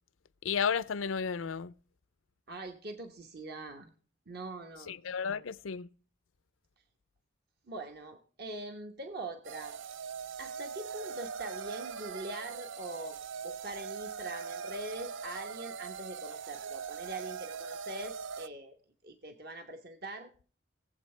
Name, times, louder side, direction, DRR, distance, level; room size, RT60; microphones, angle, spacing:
voice 1, 0.4-1.7 4.9-5.9, left 6 dB, 85° left, 0.5 m, -33 dB
voice 2, 2.5-3.9 4.3-5.2 7.7-9.7 10.4-18.8 19.0-20.3, right 2 dB, 50° right, 1.1 m, -43 dB
sound 1, 9.4-18.5, right 6 dB, 70° right, 0.4 m, -41 dB
19.5 x 8.0 x 3.3 m
head